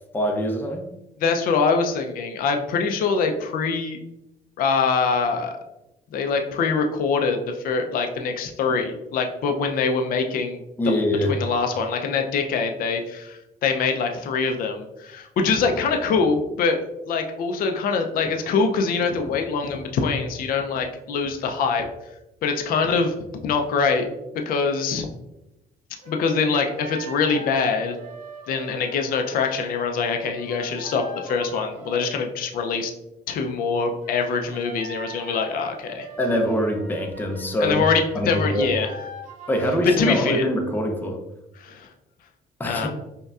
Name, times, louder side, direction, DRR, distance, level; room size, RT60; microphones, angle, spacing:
voice 1, 0.1-0.9 10.8-11.3 36.2-37.8 38.1-38.7 39.5-41.2 42.6-42.9, equal, 10° left, 2 dB, 0.5 m, -23 dB
voice 2, 1.2-4.0 4.6-5.6 6.1-11.0 11.3-16.8 17.1-21.9 22.4-23.1 23.4-24.1 24.5-25.1 26.1-28.0 28.5-32.9 33.3-36.1 37.6-38.9 40.0-40.5 41.6-41.9 42.6-42.9, left 5 dB, 60° left, 4 dB, 0.5 m, -24 dB
sound 1, 26.0-32.2 34.0-40.2, right 1 dB, 50° right, 1.2 m, -41 dB
5.3 x 2.2 x 2.4 m, 0.91 s
cardioid pair, 110°, 17 cm